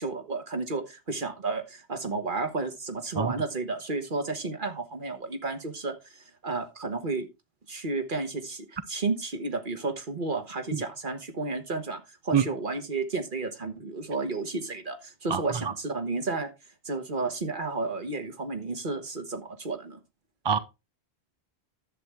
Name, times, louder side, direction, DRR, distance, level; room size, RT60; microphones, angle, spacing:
voice 1, 0.0-7.3 7.7-16.5 16.8-20.0, right 3 dB, 50° right, 1.5 m, -32 dB
voice 2, 3.2-3.3 10.7-10.8 12.3-12.4 15.3-15.4 20.4-20.6, right 7 dB, 30° right, 0.5 m, -24 dB
10.5 x 7.8 x 3.5 m
omnidirectional pair, 1.1 m